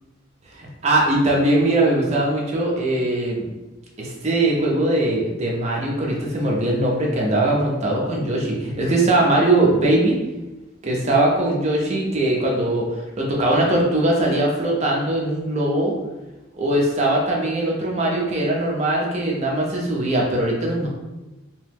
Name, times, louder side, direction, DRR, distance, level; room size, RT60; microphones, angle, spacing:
voice 1, 0.5-3.5 4.0-10.2 10.8-15.9 16.6-20.9, right 1 dB, 30° right, -2 dB, 0.6 m, -21 dB
2.9 x 2.1 x 3.3 m, 1.0 s
head